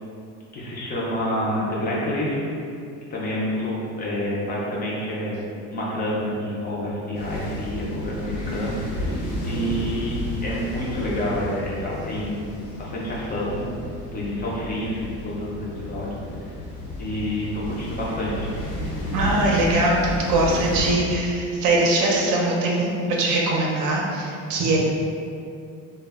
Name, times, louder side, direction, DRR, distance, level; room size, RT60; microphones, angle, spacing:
voice 1, 0.5-2.4 3.1-5.4 5.7-12.5 12.8-13.7 14.1-16.2 17.0-18.5, left 1 dB, 30° left, -6 dB, 0.4 m, -28 dB
sound 1, 7.1-20.9, left 1 dB, 80° left, 0.8 m, -32 dB
voice 2, 9.2-9.7 19.1-24.8, right 2 dB, 65° right, -2 dB, 0.6 m, -22 dB
2.1 x 2.0 x 3.3 m, 2.5 s
cardioid pair, 150°, 33 cm